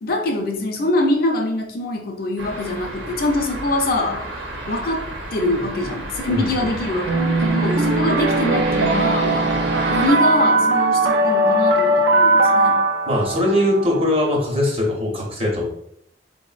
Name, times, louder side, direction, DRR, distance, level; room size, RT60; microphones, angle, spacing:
voice 1, 0.0-4.2 4.7-5.1 5.3-9.5 9.9-12.8, left 2 dB, 55° left, 1 dB, 0.4 m, -23 dB
sound 1, 2.4-10.1, right 1 dB, 85° right, 0.8 m, -30 dB
voice 2, 6.3-6.7 7.9-8.0 13.1-15.7, left 1 dB, 35° right, -1 dB, 0.7 m, -21 dB
sound 2, 7.1-14.1, right 2 dB, 65° right, 0.4 m, -19 dB
3.7 x 2.0 x 2.4 m, 0.72 s
head